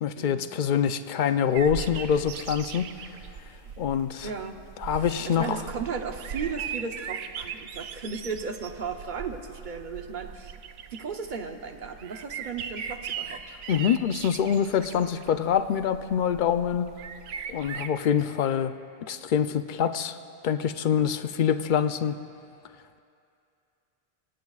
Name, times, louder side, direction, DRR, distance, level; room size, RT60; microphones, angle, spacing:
voice 1, 0.0-2.9 3.8-4.3 4.8-5.6 13.7-16.9 17.5-18.7 19.1-20.2 20.4-22.2, left 8 dB, 55° left, 10 dB, 0.6 m, -25 dB
sound 1, 1.5-17.9, right 7 dB, 80° right, 0.9 m, -39 dB
voice 2, 4.2-10.5 10.9-13.6, right 5 dB, 50° right, 5 dB, 0.9 m, -36 dB
26.0 x 18.0 x 2.4 m, 2.5 s
omnidirectional pair, 1.1 m